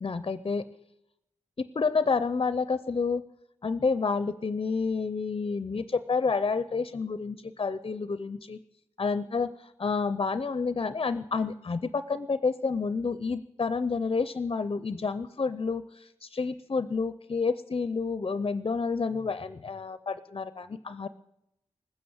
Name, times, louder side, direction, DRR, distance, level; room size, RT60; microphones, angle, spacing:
voice 1, 0.0-0.6 1.6-3.2 3.6-8.6 9.0-9.5 9.8-21.1, left 4 dB, 45° left, 14 dB, 0.5 m, -29 dB
19.5 x 9.6 x 7.1 m, 0.86 s
wide cardioid pair, 95°, 12 cm